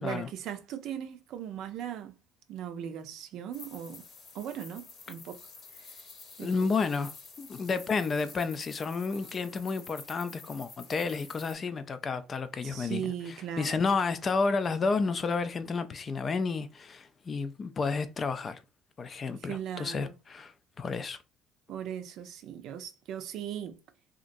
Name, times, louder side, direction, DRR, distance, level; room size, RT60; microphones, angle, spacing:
voice 1, 0.0-2.2 2.5-4.0 4.3-5.4 5.7-6.0 6.4-6.5 12.6-13.8 19.4-20.1 21.7-23.8, right 9 dB, 65° right, 0.5 m, -38 dB
sound 1, 3.5-11.5, left 4 dB, 55° left, 0.9 m, -49 dB
voice 2, 6.4-13.1 13.6-18.6 19.0-21.2, left 4 dB, 35° left, 0.4 m, -31 dB
2.8 x 2.4 x 2.5 m
supercardioid pair, 95°, 0 cm